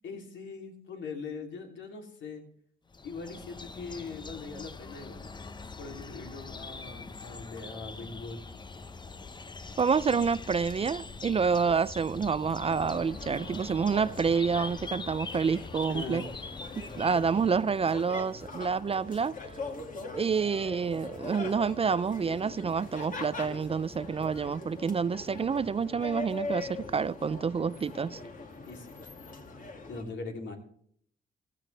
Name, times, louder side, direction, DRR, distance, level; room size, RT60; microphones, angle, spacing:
voice 1, 0.0-2.4 3.0-5.2 5.8-8.4 15.9-16.3 28.7-28.9 29.9-30.6, left 4 dB, 70° left, 3.2 m, -41 dB
sound 1, 2.9-17.8, left 4 dB, 20° left, 0.8 m, -43 dB
voice 2, 9.8-16.2 17.0-19.3 20.1-28.2, right 5 dB, 30° right, 0.4 m, -28 dB
sound 2, 12.7-30.0, left 3 dB, 40° left, 2.3 m, -42 dB
15.0 x 14.0 x 3.4 m
cardioid pair, 90°, 20 cm